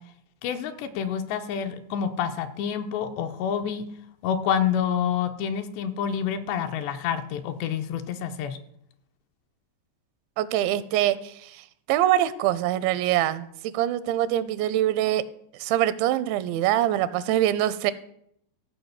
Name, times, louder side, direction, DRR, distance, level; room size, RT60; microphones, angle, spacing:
voice 1, 0.4-3.9 4.2-8.6, left 8 dB, 80° left, 7 dB, 2.8 m, -28 dB
voice 2, 10.4-15.2 15.6-17.9, right 13 dB, 85° right, 15 dB, 2.9 m, -24 dB
15.0 x 4.9 x 8.1 m, 0.71 s
omnidirectional pair, 5.2 m